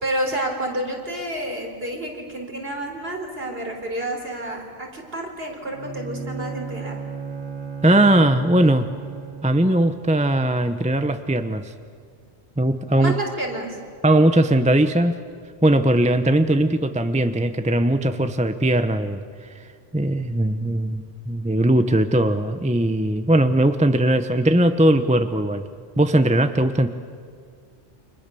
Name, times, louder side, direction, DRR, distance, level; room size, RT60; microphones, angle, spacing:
voice 1, 0.0-7.0 13.0-13.8, right 1 dB, 55° right, 2 dB, 4.2 m, -29 dB
Bowed string instrument, 5.6-9.7, right 5 dB, 85° right, 2.6 m, -34 dB
voice 2, 7.8-8.9 9.4-11.7 12.6-13.2 14.0-15.2 15.6-19.2 19.9-25.6 26.0-26.9, right 1 dB, 5° right, 9 dB, 0.7 m, -19 dB
29.5 x 25.5 x 6.9 m, 2.1 s
omnidirectional pair, 1.2 m